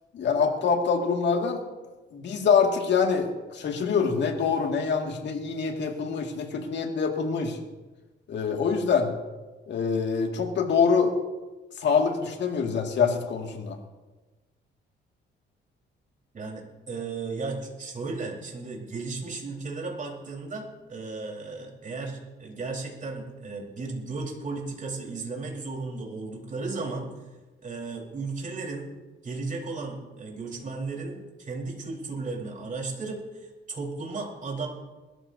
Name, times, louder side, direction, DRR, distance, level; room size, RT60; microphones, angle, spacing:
voice 1, 0.1-1.6 2.1-7.6 8.3-9.1 9.7-11.1 11.8-13.8, left 5 dB, 65° left, 3 dB, 2.1 m, -25 dB
voice 2, 16.3-27.1 27.6-28.9 29.2-34.7, right 3 dB, 40° right, -1 dB, 4.2 m, -35 dB
21.5 x 13.5 x 2.7 m, 1.2 s
cardioid pair, 90°, 20 cm